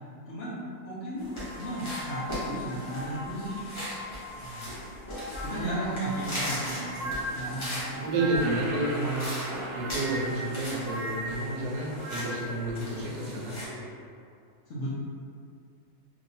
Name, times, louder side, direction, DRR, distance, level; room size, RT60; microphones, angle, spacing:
voice 1, 0.8-3.9 4.4-4.7 5.4-8.4 14.7-15.0, equal, 55° left, -9 dB, 1.0 m, -36 dB
sound 1, 1.2-13.7, equal, 25° left, 0.7 m, -39 dB
sound 2, 1.3-4.6 5.0-8.8 9.5-12.6, equal, 30° right, 1.3 m, -39 dB
voice 2, 5.5-6.5 8.0-9.3 9.8-13.6, right 2 dB, 85° right, -3 dB, 1.2 m, -31 dB
sound 3, 8.4-13.9, right 1 dB, 75° left, 1.1 m, -41 dB
3.1 x 2.7 x 2.7 m, 2.4 s
omnidirectional pair, 1.7 m